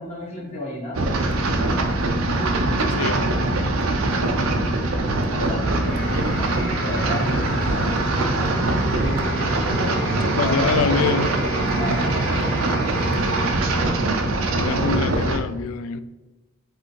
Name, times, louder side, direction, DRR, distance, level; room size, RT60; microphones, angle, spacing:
voice 1, 0.0-2.0 5.3-7.9 8.9-9.5 10.4-11.0 11.8-12.5 14.7-14.9, left 1 dB, 30° left, -7 dB, 1.3 m, -33 dB
sound 1, 0.9-15.4, right 2 dB, 80° right, 0.5 m, -22 dB
voice 2, 2.9-3.4 7.9-8.0 10.4-11.3 14.6-16.0, left 6 dB, 85° left, 13 dB, 0.3 m, -25 dB
sound 2, 5.6-14.6, left 1 dB, 60° left, 1.3 m, -34 dB
4.8 x 3.4 x 3.1 m, 1.1 s
head